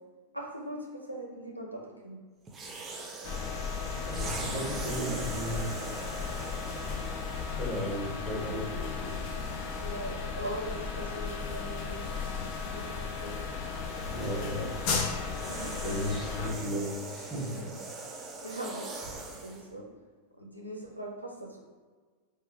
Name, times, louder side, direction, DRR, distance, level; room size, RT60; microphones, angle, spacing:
voice 1, 0.3-2.2 9.8-13.4 15.5-15.7 17.5-17.8 18.4-19.8 20.4-21.6, right 1 dB, 90° right, -1 dB, 0.5 m, -41 dB
sound 1, 2.5-8.0 8.8-9.0 13.0-19.7, right 3 dB, 20° right, 0.5 m, -42 dB
sound 2, 3.2-16.5, left 5 dB, 45° left, 0.5 m, -35 dB
voice 2, 3.9-5.6 7.5-9.1 14.0-14.7 15.8-17.7, equal, 5° left, -5 dB, 1.2 m, -35 dB
4.2 x 2.4 x 2.7 m, 1.5 s
figure-of-eight pair, 90°, 0 cm